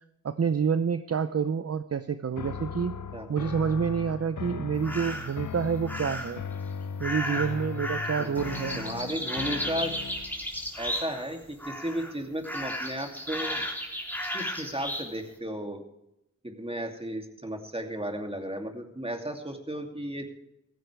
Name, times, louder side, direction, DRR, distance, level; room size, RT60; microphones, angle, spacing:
voice 1, 0.2-3.0 3.3-6.4 7.0-8.8, right 6 dB, 50° right, 11 dB, 0.6 m, -28 dB
sound 1, 2.4-10.4, left 6 dB, 70° left, 0.7 m, -38 dB
sound 2, 4.8-5.4 5.9-6.4 7.0-11.3 11.6-12.1 12.4-15.1, equal, 5° left, 3.3 m, -34 dB
voice 2, 8.7-9.9 10.8-13.7 14.3-15.8 16.4-20.3, right 1 dB, 20° right, 4 dB, 2.7 m, -34 dB
15.5 x 15.5 x 3.4 m, 0.85 s
cardioid pair, 45°, 32 cm